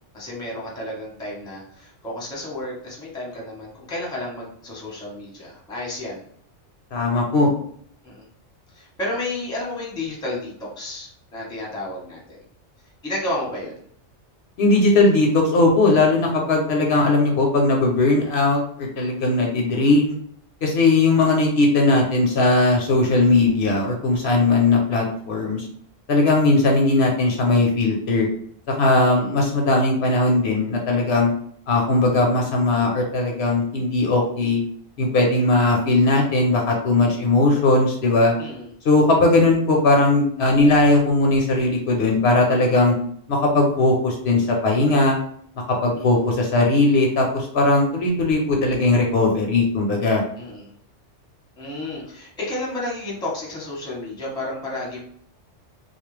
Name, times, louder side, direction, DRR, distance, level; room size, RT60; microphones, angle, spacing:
voice 1, 0.1-6.2 8.0-8.3 8.7-12.4 13.0-13.8 19.4-19.7 29.0-29.4 38.4-38.7 45.9-46.2 50.3-50.7 51.6-55.0, left 1 dB, 5° left, -4 dB, 0.6 m, -32 dB
voice 2, 6.9-7.5 14.6-20.2 20.6-25.7 26.1-28.3 28.7-31.3 31.7-34.6 35.0-38.3 38.8-42.9 43.3-45.2 45.6-50.2, left 2 dB, 65° left, 0 dB, 0.8 m, -18 dB
2.3 x 2.1 x 3.1 m, 0.63 s
omnidirectional pair, 1.2 m